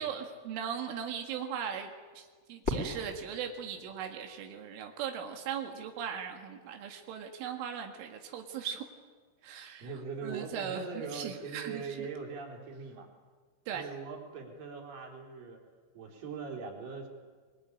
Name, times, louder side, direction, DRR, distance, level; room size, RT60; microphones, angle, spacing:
voice 1, 0.0-8.9 9.4-9.9 10.2-10.9 11.1-12.1 13.7-13.9, right 8 dB, 90° right, 4 dB, 4.4 m, -38 dB
Fireworks, 2.6-4.8, left 2 dB, 15° left, 3.1 m, -39 dB
voice 2, 9.8-13.1 13.7-15.6 16.0-17.1, right 5 dB, 50° right, 1 dB, 5.3 m, -41 dB
24.0 x 22.5 x 9.9 m, 1.5 s
omnidirectional pair, 5.5 m